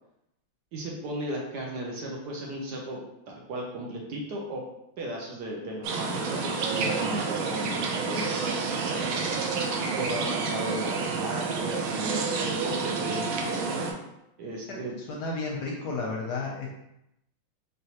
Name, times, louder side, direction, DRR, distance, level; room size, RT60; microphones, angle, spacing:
voice 1, 0.7-3.0 3.5-4.6 5.0-9.2 10.0-13.3 14.4-15.0, right 1 dB, 65° right, -2 dB, 1.2 m, -35 dB
sound 1, 5.8-13.9, right 4 dB, 85° right, 1.4 m, -29 dB
voice 2, 15.1-16.7, left 3 dB, 70° left, -1 dB, 1.1 m, -32 dB
3.9 x 3.6 x 2.9 m, 0.85 s
omnidirectional pair, 2.2 m